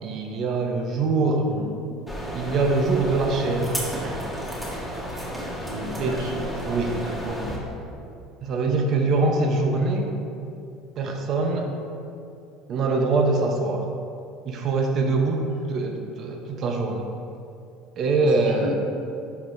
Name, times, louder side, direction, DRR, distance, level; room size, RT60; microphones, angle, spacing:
voice 1, 0.0-1.5 2.3-4.2 6.0-6.2 6.7-7.0 8.4-10.1 11.0-11.7 12.7-13.8 14.5-17.1 18.0-18.7, right 3 dB, 50° right, 2 dB, 0.7 m, -23 dB
voice 2, 1.4-1.7 5.6-6.5 6.9-7.4 18.5-18.7, right 1 dB, 90° right, -2 dB, 1.4 m, -34 dB
sound 1, 2.1-7.6, equal, 5° right, 1.5 m, -32 dB
10.0 x 4.9 x 2.6 m, 2.6 s
supercardioid pair, 105°, 0 cm